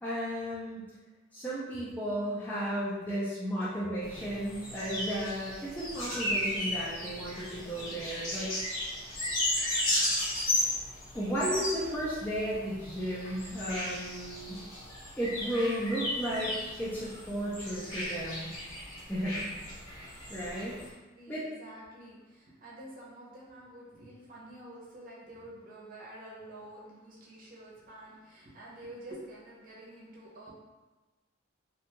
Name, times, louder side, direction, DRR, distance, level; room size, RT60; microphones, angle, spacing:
voice 1, 0.0-0.9 1.3-8.5 11.1-14.6 15.2-18.5 19.1-19.5 20.3-20.7 21.3-21.4, equal, 10° left, -9 dB, 0.4 m, -34 dB
sound 1, 4.0-20.9, left 1 dB, 85° left, 1.3 m, -35 dB
voice 2, 21.1-30.5, right 1 dB, 45° right, -5 dB, 0.7 m, -48 dB
2.6 x 2.3 x 2.9 m, 1.2 s
head